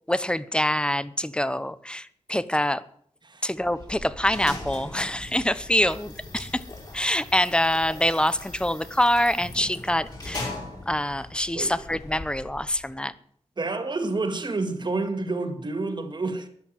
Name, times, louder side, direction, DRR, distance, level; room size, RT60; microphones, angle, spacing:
voice 1, 0.1-2.8 3.4-6.6 6.9-10.5 10.9-13.1, left 1 dB, 10° left, 0.8 m, -25 dB
sound 1, 3.6-12.9, left 2 dB, 35° left, 4.6 m, -40 dB
voice 2, 13.6-16.5, right 3 dB, 40° right, 2.1 m, -29 dB
13.0 x 11.0 x 7.6 m
wide cardioid pair, 125°, 12 cm